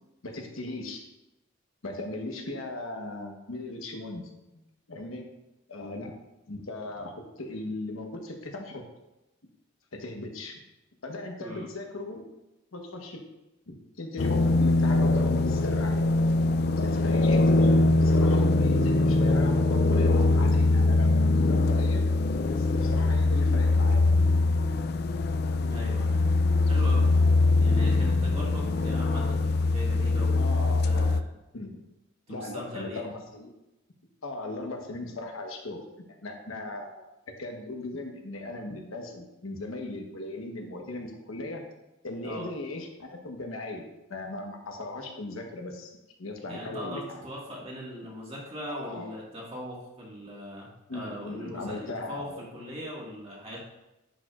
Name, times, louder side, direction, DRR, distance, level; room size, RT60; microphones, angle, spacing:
voice 1, 0.2-1.0 1.8-4.3 4.9-5.2 5.7-6.1 6.5-8.8 9.9-10.5 11.0-12.3 12.7-13.2 13.7-16.1 16.7-21.1 21.5-22.1 22.5-24.0 30.4-31.1 31.5-31.8 32.3-33.5 34.2-35.9 36.2-37.0 37.4-41.6 42.0-45.9 46.2-47.3 48.7-49.0 50.9-52.4, left 2 dB, 90° left, 2 dB, 1.1 m, -38 dB
sound 1, 14.2-31.2, left 2 dB, 50° left, 0.3 m, -22 dB
voice 2, 25.7-26.2 26.7-27.1 27.6-30.5 30.8-31.2 32.3-33.1 42.2-42.5 46.5-53.6, equal, 30° right, -4 dB, 1.7 m, -40 dB
10.5 x 5.0 x 2.4 m, 0.97 s
head